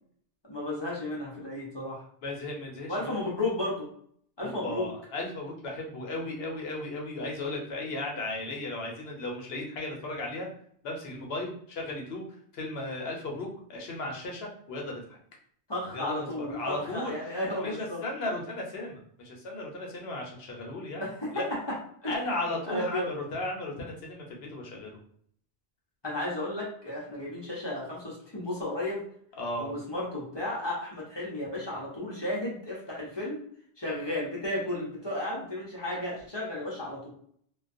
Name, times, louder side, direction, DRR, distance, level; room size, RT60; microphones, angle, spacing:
voice 1, 0.5-2.0 2.9-3.9 4.4-4.9 15.7-18.0 21.0-21.3 22.0-22.1 22.7-23.1 26.0-29.0 29.6-33.4 33.8-37.1, left 1 dB, 30° left, -5 dB, 0.6 m, -33 dB
voice 2, 2.2-3.1 4.4-10.5 10.8-15.2 15.9-21.1 21.3-21.5 22.1-25.0 29.4-29.7, left 2 dB, 65° left, 0 dB, 0.9 m, -36 dB
2.3 x 2.3 x 2.5 m, 0.62 s
omnidirectional pair, 1.1 m